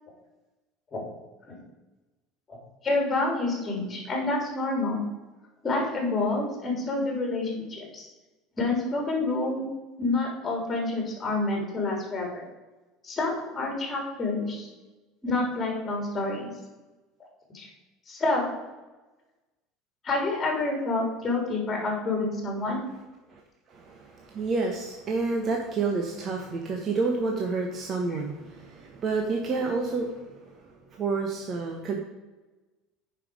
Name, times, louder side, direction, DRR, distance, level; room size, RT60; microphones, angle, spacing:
voice 1, 2.8-5.0 5.6-8.1 8.6-9.7 10.0-12.4 13.0-14.7 15.2-16.5 17.5-17.7 18.1-18.5 20.0-22.8, left 2 dB, 20° left, 0 dB, 3.7 m, -28 dB
voice 2, 23.7-30.6 30.9-31.9, right 4 dB, 35° right, 1 dB, 1.3 m, -29 dB
9.2 x 5.8 x 6.5 m, 1.2 s
cardioid pair, 145°, 0 cm